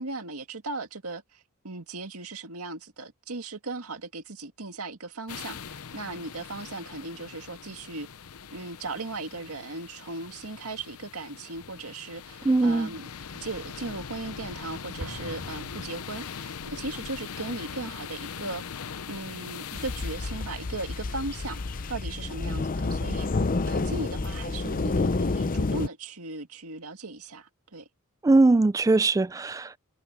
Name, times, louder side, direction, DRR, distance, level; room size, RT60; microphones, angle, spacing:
voice 1, 0.0-8.1 8.5-13.1 13.4-18.8 19.1-21.6 21.9-27.9, right 3 dB, 80° right, 2.1 m, -37 dB
sound 1, 5.3-21.9, left 6 dB, 80° left, 0.8 m, -41 dB
voice 2, 12.4-12.9 28.2-29.8, right 2 dB, 15° right, 0.3 m, -21 dB
Explosion, 15.0-16.8, right 1 dB, 65° right, 7.2 m, -43 dB
sound 2, 19.7-25.9, left 3 dB, 40° left, 0.6 m, -29 dB
head